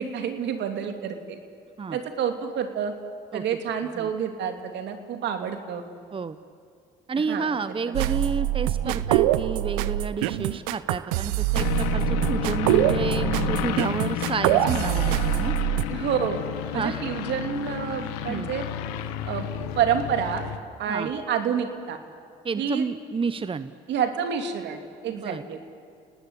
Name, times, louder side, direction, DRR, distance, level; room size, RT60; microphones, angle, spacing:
voice 1, 0.0-1.4 1.9-2.9 3.3-5.8 7.3-7.6 8.0-8.2 8.8-9.0 15.9-16.4 16.7-18.7 19.2-19.5 19.8-20.5 20.8-22.0 22.6-22.9 23.9-25.6, right 8 dB, 70° right, 6 dB, 2.9 m, -28 dB
voice 2, 7.1-15.5 16.7-17.0 18.3-18.5 20.9-21.1 22.4-23.7 25.1-25.4, right 5 dB, 30° right, 13 dB, 0.9 m, -30 dB
sound 1, 7.9-15.8, right 15 dB, 90° right, 0.7 m, -24 dB
sound 2, 11.6-20.6, left 12 dB, 90° left, 1.3 m, -31 dB
30.0 x 18.5 x 8.4 m, 2.4 s
supercardioid pair, 65°, 19 cm